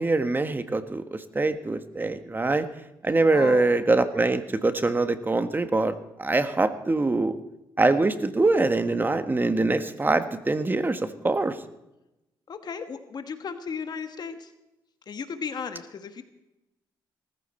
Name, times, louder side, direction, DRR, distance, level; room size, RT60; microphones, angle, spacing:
voice 1, 0.0-2.7 3.0-7.4 7.8-11.6, right 2 dB, 25° right, 10 dB, 1.4 m, -24 dB
voice 2, 3.3-3.7 12.5-14.5 15.1-16.2, left 6 dB, 50° left, 8 dB, 1.4 m, -35 dB
19.0 x 14.5 x 4.4 m, 0.94 s
cardioid pair, 75°, 9 cm